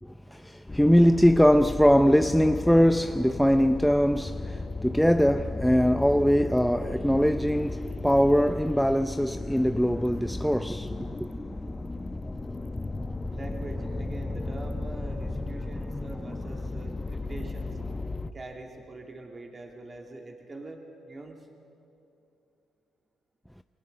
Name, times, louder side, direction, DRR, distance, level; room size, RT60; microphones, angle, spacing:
voice 1, 0.0-11.3, equal, ahead, 0.6 m, -22 dB
sound 1, 0.7-18.3, left 2 dB, 15° left, 0.9 m, -35 dB
voice 2, 13.3-17.8 18.3-21.5, right 2 dB, 30° right, 2.8 m, -43 dB
29.0 x 22.5 x 6.8 m
cardioid pair, 90°, 0 cm